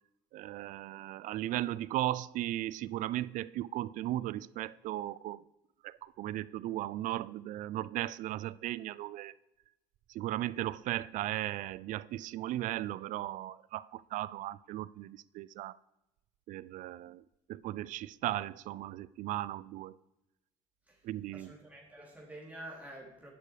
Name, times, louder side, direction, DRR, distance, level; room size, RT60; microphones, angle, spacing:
voice 1, 0.3-5.4 5.8-9.3 10.1-15.8 16.5-17.2 17.5-19.9 21.0-21.5, right 14 dB, 65° right, 0.4 m, -36 dB
voice 2, 21.3-23.3, right 1 dB, 10° right, 3.5 m, -48 dB
9.8 x 6.8 x 4.8 m
hypercardioid pair, 60°, 14 cm